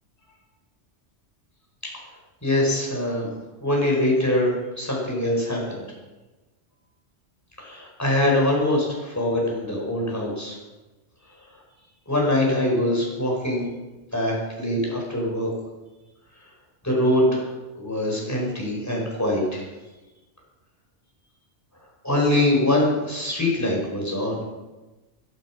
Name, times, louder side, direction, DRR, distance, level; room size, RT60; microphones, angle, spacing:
voice 1, 2.4-3.3 3.6-5.8 7.6-10.6 12.1-13.7 14.1-15.5 16.8-17.5 17.8-19.6 22.0-24.4, left 1 dB, 15° left, -2 dB, 5.2 m, -23 dB
16.5 x 12.5 x 6.1 m, 1.1 s
omnidirectional pair, 1.2 m